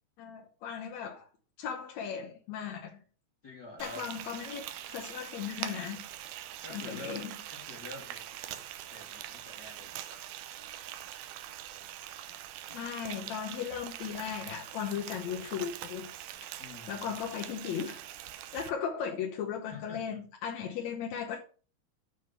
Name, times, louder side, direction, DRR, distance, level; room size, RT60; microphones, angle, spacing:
voice 1, 0.2-1.3 1.6-3.0 3.8-6.0 6.7-7.4 12.3-16.1 16.9-18.0 18.5-21.4, left 8 dB, 70° left, 0 dB, 1.8 m, -37 dB
voice 2, 3.4-4.0 6.6-7.2 7.5-8.6 8.9-10.2 16.6-17.2 19.7-20.2, left 3 dB, 35° left, -2 dB, 1.8 m, -48 dB
Frying (food), 3.8-18.7, right 12 dB, 80° right, 2.5 m, -43 dB
7.4 x 5.1 x 6.9 m, 0.39 s
omnidirectional pair, 4.4 m